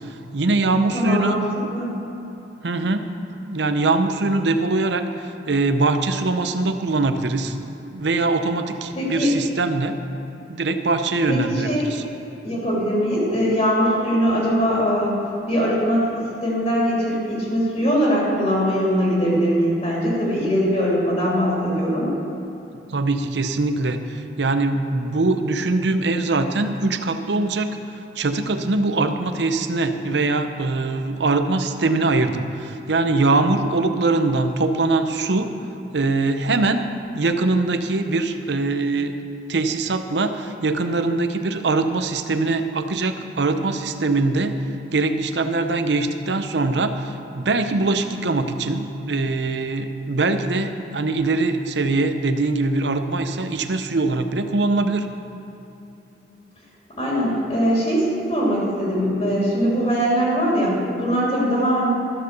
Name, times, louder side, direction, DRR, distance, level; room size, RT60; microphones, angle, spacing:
voice 1, 0.3-1.4 2.6-3.1 3.4-7.6 7.9-10.0 10.5-12.0 22.9-27.8 28.2-35.5 35.9-36.8 37.1-39.1 39.5-44.6 44.9-55.1, right 3 dB, 75° right, 8 dB, 0.7 m, -22 dB
voice 2, 0.9-1.4 1.7-2.0 8.9-9.3 11.3-11.9 12.4-15.2 15.5-22.1 56.9-61.9, equal, 35° left, -5 dB, 3.0 m, -21 dB
13.5 x 6.7 x 6.7 m, 2.9 s
head